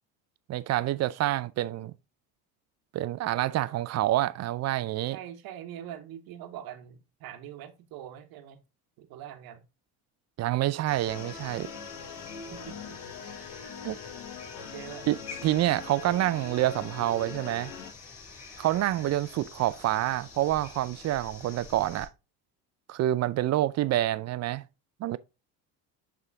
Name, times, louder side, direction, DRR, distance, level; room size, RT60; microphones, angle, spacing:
voice 1, 0.5-1.9 2.9-5.2 10.4-11.7 13.8-14.0 15.1-15.2 15.4-17.7 18.6-22.1 22.9-24.6 25.0-25.2, right 14 dB, 45° right, 0.4 m, -27 dB
voice 2, 3.5-3.9 5.1-8.6 9.0-9.7 12.5-13.0 14.7-15.1, right 10 dB, 65° right, 1.2 m, -43 dB
sound 1, 10.9-22.1, left 4 dB, 40° left, 3.9 m, -47 dB
sound 2, 11.1-17.9, left 6 dB, 80° left, 1.3 m, -42 dB
8.2 x 3.6 x 3.6 m
supercardioid pair, 95°, 38 cm